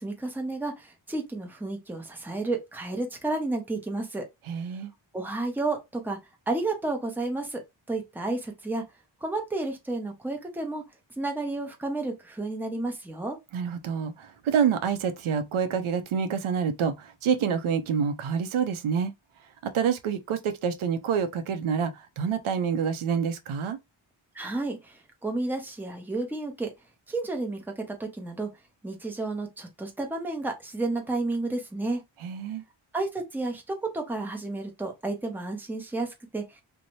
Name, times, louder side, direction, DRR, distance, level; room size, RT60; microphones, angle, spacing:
voice 1, 0.0-4.3 5.1-6.2 6.5-7.6 7.9-8.8 9.2-10.8 11.2-13.4 24.3-26.7 27.1-28.5 28.8-32.0 32.9-36.6, right 2 dB, 5° right, 0.6 m, -31 dB
voice 2, 4.5-4.9 13.5-19.1 19.6-23.8 32.2-32.6, right 7 dB, 85° right, 0.6 m, -27 dB
2.7 x 2.1 x 2.9 m
wide cardioid pair, 120°, 48 cm